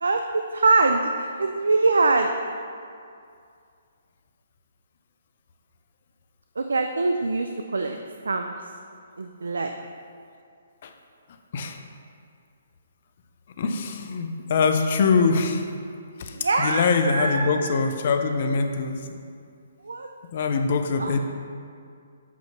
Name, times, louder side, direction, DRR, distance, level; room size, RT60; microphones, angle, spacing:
voice 1, 0.0-2.3 6.6-8.0 8.3-8.6 9.2-9.7 16.3-17.7 19.8-20.1 21.0-21.1, right 3 dB, 85° right, 5 dB, 0.4 m, -23 dB
voice 2, 13.6-15.6 16.2-19.2 20.3-21.2, left 4 dB, 50° left, 6 dB, 0.6 m, -23 dB
8.2 x 3.0 x 5.8 m, 2.3 s
hypercardioid pair, 140°, 0 cm